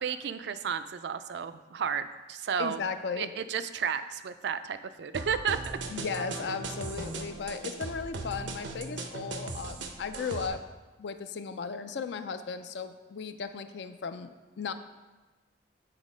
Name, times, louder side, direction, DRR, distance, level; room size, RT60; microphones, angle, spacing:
voice 1, 0.0-2.8 3.2-5.6, right 7 dB, 65° right, 12 dB, 0.4 m, -32 dB
voice 2, 2.6-3.3 5.9-10.6 11.0-14.3 14.6-14.7, left 5 dB, 65° left, 10 dB, 0.4 m, -36 dB
sound 1, 5.1-10.5, right 3 dB, 80° right, 0.7 m, -38 dB
7.4 x 4.0 x 5.0 m, 1.2 s
head